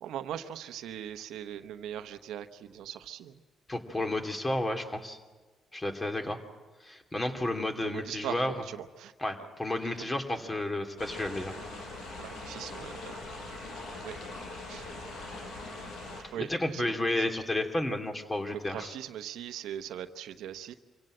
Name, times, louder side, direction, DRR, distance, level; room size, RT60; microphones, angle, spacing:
voice 1, 0.0-3.4 7.8-9.1 12.2-13.3 14.0-14.2 14.7-14.9 16.3-17.0 18.5-20.7, right 10 dB, 85° right, 9 dB, 0.9 m, -40 dB
voice 2, 3.7-5.2 5.7-6.4 6.8-8.5 9.2-11.6 16.4-18.9, left 1 dB, 20° left, 5 dB, 2.6 m, -32 dB
sound 1, 11.0-16.2, left 2 dB, 80° left, 5.5 m, -42 dB
26.0 x 16.5 x 7.7 m, 1.3 s
cardioid pair, 90°, 0 cm